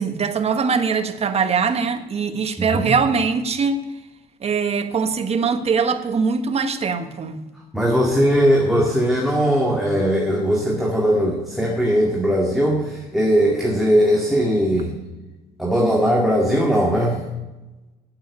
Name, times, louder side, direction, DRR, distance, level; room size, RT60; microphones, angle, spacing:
voice 1, 0.0-3.8 4.4-7.4, right 5 dB, 40° right, 8 dB, 1.3 m, -22 dB
voice 2, 2.6-3.0 7.7-14.9 15.6-17.2, equal, ahead, -2 dB, 2.0 m, -19 dB
9.1 x 8.9 x 9.6 m, 1.1 s
cardioid pair, 110°, 17 cm